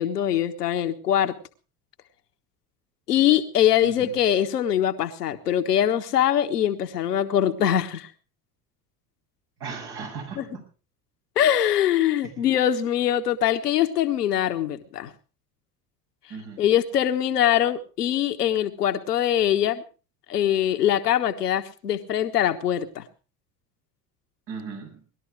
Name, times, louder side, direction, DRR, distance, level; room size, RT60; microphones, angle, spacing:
voice 1, 0.0-1.3 3.1-8.1 10.4-10.5 11.4-15.1 16.6-19.8 20.3-23.0, left 10 dB, 90° left, 7 dB, 1.4 m, -23 dB
voice 2, 3.8-4.1 9.6-10.6 12.2-12.5 16.3-16.6 24.5-25.0, right 5 dB, 60° right, 1 dB, 7.6 m, -37 dB
19.5 x 12.5 x 4.7 m, 0.36 s
hypercardioid pair, 70°, 46 cm